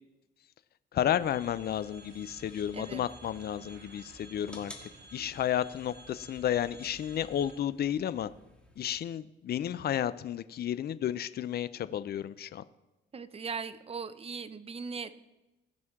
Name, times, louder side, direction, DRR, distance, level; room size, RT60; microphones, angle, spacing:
voice 1, 0.9-8.3 8.8-12.6, left 10 dB, 55° left, 15 dB, 0.5 m, -32 dB
sound 1, 1.2-7.6, right 2 dB, 55° right, 1.7 m, -52 dB
sound 2, 2.0-9.0, left 1 dB, 5° left, 1.8 m, -55 dB
voice 2, 13.1-15.1, right 5 dB, 30° right, 12 dB, 0.7 m, -39 dB
18.5 x 6.1 x 3.6 m, 0.99 s
cardioid pair, 90°, 20 cm